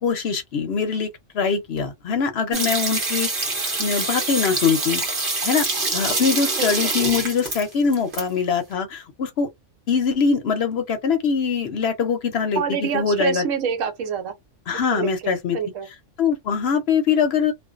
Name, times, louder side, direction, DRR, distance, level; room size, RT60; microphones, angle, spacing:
voice 1, 0.0-3.3 3.8-5.0 5.4-5.7 5.9-9.5 9.9-13.5 14.7-15.6 16.2-17.5, left 6 dB, 60° left, 0.7 m, -22 dB
sound 1, 2.5-8.2 8.5-8.6, right 3 dB, 45° right, 0.9 m, -25 dB
voice 2, 12.6-14.3 14.9-15.1 15.5-15.9, right 7 dB, 70° right, 1.1 m, -26 dB
2.5 x 2.1 x 2.4 m
omnidirectional pair, 1.4 m